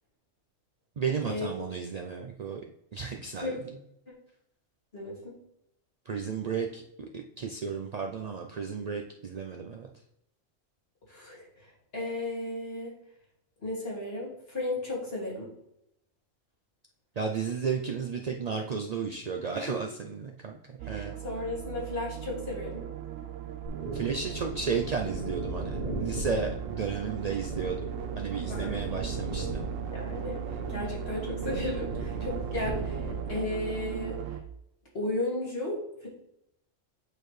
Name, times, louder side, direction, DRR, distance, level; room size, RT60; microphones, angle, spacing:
voice 1, 1.0-2.6 2.9-3.6 6.1-9.9 17.2-21.1 23.9-27.8 28.2-29.5 32.2-32.3, right 5 dB, 65° right, 2 dB, 0.4 m, -33 dB
voice 2, 4.9-5.4 11.1-12.9 13.6-15.5 19.4-19.8 20.8-22.9 28.5-28.9 29.5-29.6 29.9-34.2 34.9-36.1, left 2 dB, 50° left, -5 dB, 2.7 m, -35 dB
sound 1, 20.8-34.4, right 11 dB, 85° right, 1.0 m, -37 dB
sound 2, 23.7-33.3, right 1 dB, 40° right, 1.5 m, -37 dB
8.5 x 4.4 x 3.2 m, 0.82 s
omnidirectional pair, 1.3 m